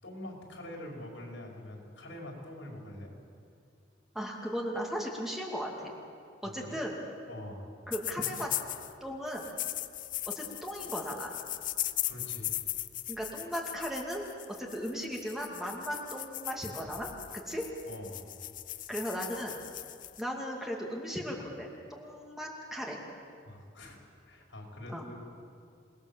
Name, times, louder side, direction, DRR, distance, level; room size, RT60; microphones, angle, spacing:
voice 1, 0.0-3.1 6.4-6.8 7.3-7.7 10.8-10.9 11.8-12.5 17.9-18.2 23.5-24.0 24.3-25.2, left 1 dB, 75° left, 0 dB, 5.5 m, -45 dB
voice 2, 4.1-5.9 6.4-7.0 7.9-8.5 9.0-9.5 10.3-11.3 13.1-17.7 18.9-19.6 20.2-23.0 24.9-25.0, equal, ahead, -1 dB, 2.6 m, -37 dB
sound 1, 7.9-8.9 9.3-20.2, left 14 dB, 45° left, 0.7 m, -38 dB
27.5 x 20.5 x 7.4 m, 2.4 s
head